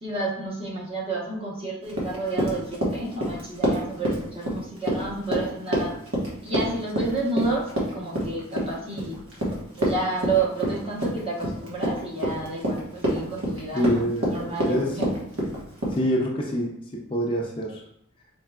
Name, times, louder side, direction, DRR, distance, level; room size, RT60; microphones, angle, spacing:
voice 1, 0.0-5.9 6.4-9.2 9.8-14.0 14.3-15.1, right 3 dB, 25° right, -4 dB, 1.0 m, -30 dB
Run, 1.9-16.0, equal, 70° right, 1.3 m, -27 dB
voice 2, 13.7-14.9 16.0-16.7 17.1-17.8, equal, 25° left, -1 dB, 0.5 m, -25 dB
4.6 x 3.2 x 2.4 m, 0.73 s
head